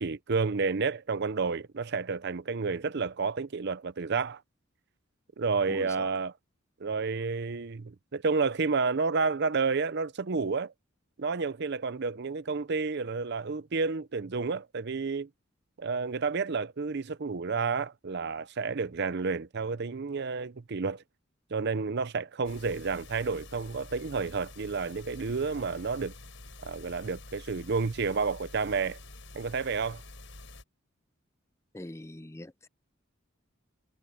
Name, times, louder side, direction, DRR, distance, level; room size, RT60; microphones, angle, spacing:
voice 1, 0.0-4.4 5.4-6.3 6.8-10.7 11.2-15.3 15.8-21.0 21.5-26.1 26.6-29.0 29.3-30.0, right 4 dB, 55° right, 0.6 m, -30 dB
voice 2, 5.7-6.1 31.7-32.7, left 1 dB, 15° left, 0.6 m, -43 dB
sound 1, 22.4-30.6, left 2 dB, 65° left, 7.6 m, -48 dB
head